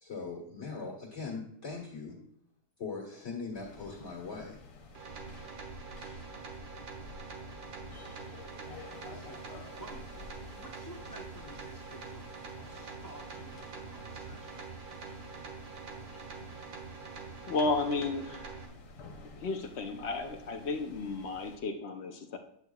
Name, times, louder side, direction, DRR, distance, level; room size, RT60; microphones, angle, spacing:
voice 1, 0.0-2.2 2.8-4.6, left 4 dB, 45° left, -2 dB, 1.8 m, -40 dB
sound 1, 3.5-21.6, left 3 dB, 80° left, 1.6 m, -51 dB
sound 2, 4.9-18.7, right 5 dB, 70° right, 1.7 m, -45 dB
voice 2, 9.1-14.7, right 1 dB, 20° left, 0 dB, 0.5 m, -52 dB
voice 3, 17.5-18.5 19.3-22.4, left 3 dB, 60° left, 5 dB, 0.7 m, -33 dB
9.4 x 8.1 x 2.3 m, 0.68 s
omnidirectional pair, 1.8 m